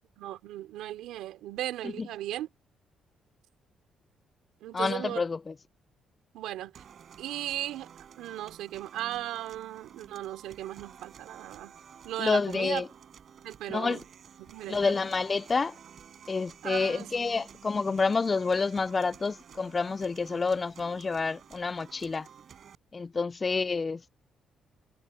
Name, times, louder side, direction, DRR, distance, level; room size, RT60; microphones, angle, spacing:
voice 1, 0.2-2.5 4.6-5.2 6.3-6.8 7.2-7.9 8.2-11.7 12.0-12.8 13.4-14.1 14.4-15.0 16.6-17.1 17.4-17.5, right 13 dB, 90° right, 3.5 m, -37 dB
voice 2, 4.7-5.5 12.2-12.9 13.7-14.0 14.7-15.8 16.3-22.3 22.9-24.0, left 4 dB, 30° left, 0.3 m, -28 dB
sound 1, 6.8-22.8, right 8 dB, 55° right, 5.2 m, -52 dB
cardioid pair, 90°, 0 cm